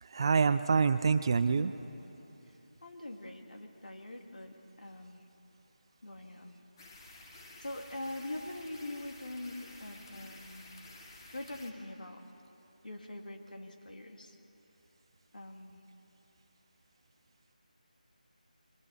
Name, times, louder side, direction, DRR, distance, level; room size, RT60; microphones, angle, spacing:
voice 1, 0.0-1.8, right 5 dB, 35° right, 13 dB, 0.5 m, -26 dB
voice 2, 2.8-5.3 6.0-6.6 7.1-7.3 7.6-10.8 11.3-12.2 12.8-14.4 15.3-15.8, left 1 dB, 75° left, 3 dB, 2.4 m, -44 dB
sound 1, 6.8-11.7, left 2 dB, 30° left, 1.9 m, -52 dB
26.5 x 24.0 x 4.2 m, 3.0 s
figure-of-eight pair, 165°, 4 cm